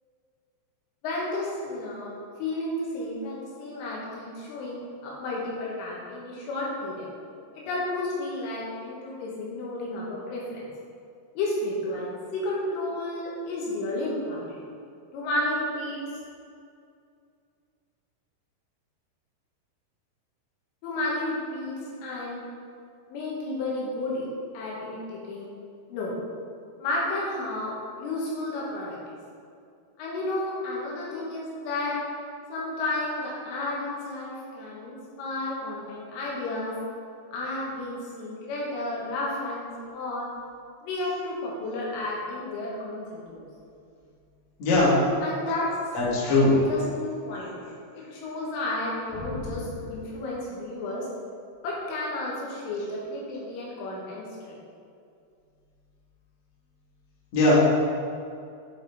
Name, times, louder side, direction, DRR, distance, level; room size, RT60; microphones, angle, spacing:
voice 1, 1.0-2.1 2.4-7.1 7.5-10.7 11.4-14.6 15.1-16.0 20.8-21.8 22.0-22.4 23.1-24.3 24.5-25.5 25.9-26.1 26.8-27.7 28.0-29.2 30.0-32.0 32.5-36.7 37.3-40.3 40.8-43.5 45.2-45.7 46.3-47.5 47.9-51.1 51.6-54.6, left 2 dB, 75° left, -5 dB, 3.7 m, -32 dB
voice 2, 44.6-45.0 45.9-46.5 49.2-49.6 57.3-57.5, left 2 dB, 50° left, -8 dB, 2.5 m, -21 dB
11.0 x 4.9 x 4.0 m, 2.4 s
omnidirectional pair, 5.9 m